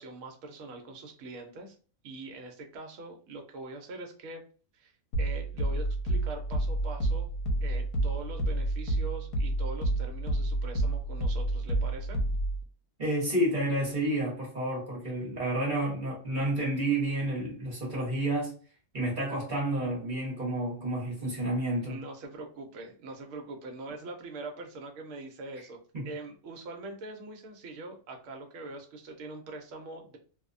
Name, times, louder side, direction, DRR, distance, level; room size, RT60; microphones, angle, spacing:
voice 1, 0.0-1.7 2.0-4.4 4.7-4.9 5.2-7.3 7.6-12.2 21.8-25.8 26.0-30.2, right 2 dB, 65° right, 1.0 m, -43 dB
sound 1, 5.1-12.6, right 1 dB, 85° left, 1.1 m, -29 dB
voice 2, 13.0-18.5 18.9-22.0 25.9-26.0, right 1 dB, 40° right, 1.0 m, -30 dB
2.6 x 2.1 x 2.4 m
omnidirectional pair, 1.5 m